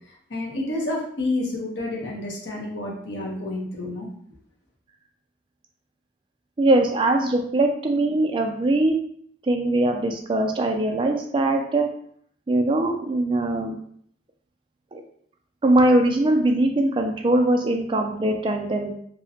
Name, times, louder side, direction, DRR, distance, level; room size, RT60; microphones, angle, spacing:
voice 1, 0.3-4.1, left 2 dB, 75° left, -2 dB, 0.8 m, -29 dB
voice 2, 6.6-8.9 9.5-11.9 12.5-13.8 14.9-15.0 15.6-18.9, right 1 dB, 25° right, 3 dB, 0.3 m, -21 dB
2.7 x 2.1 x 2.7 m, 0.63 s
head